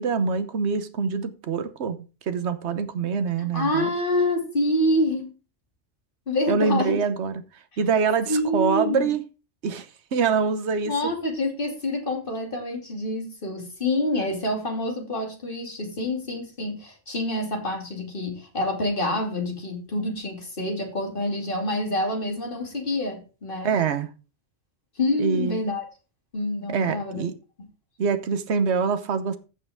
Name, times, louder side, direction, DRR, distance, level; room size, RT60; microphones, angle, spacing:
voice 1, 0.0-3.9 6.5-7.4 7.8-9.2 9.6-10.9 23.6-24.1 25.2-25.6 26.7-27.3 28.0-29.4, right 5 dB, 70° right, 11 dB, 1.2 m, -25 dB
voice 2, 3.4-5.3 6.3-7.0 8.3-9.1 10.8-23.7 25.0-25.8 26.3-27.2, left 1 dB, 45° left, 2 dB, 2.8 m, -27 dB
15.0 x 5.8 x 3.5 m, 0.32 s
omnidirectional pair, 1.2 m